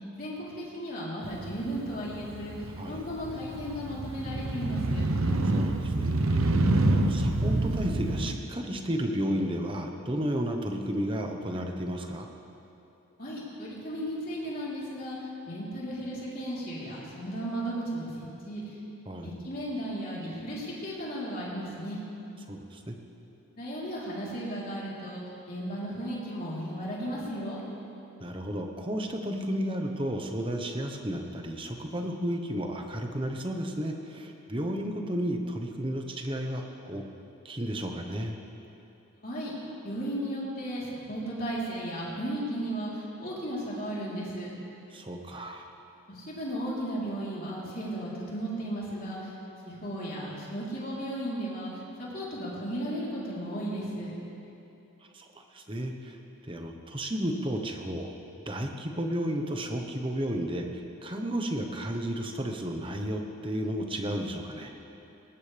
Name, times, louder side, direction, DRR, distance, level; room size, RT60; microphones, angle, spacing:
voice 1, 0.2-2.5 2.9-5.0 13.2-15.2 15.5-18.2 18.4-18.6 19.2-22.0 23.6-25.2 25.5-27.6 39.2-39.5 39.8-42.9 43.2-44.5 46.1-49.2 49.7-51.7 52.0-54.1, right 1 dB, 40° left, -6 dB, 3.7 m, -35 dB
Motorcycle, 1.2-8.4, right 2 dB, 70° right, 0.9 m, -27 dB
voice 2, 5.5-6.6 6.8-12.3 19.0-19.3 22.5-22.9 28.2-37.0 37.4-38.3 44.9-45.6 55.1-56.2 56.5-58.1 58.5-64.7, equal, 25° right, 3 dB, 1.1 m, -33 dB
19.5 x 18.5 x 3.5 m, 2.9 s
head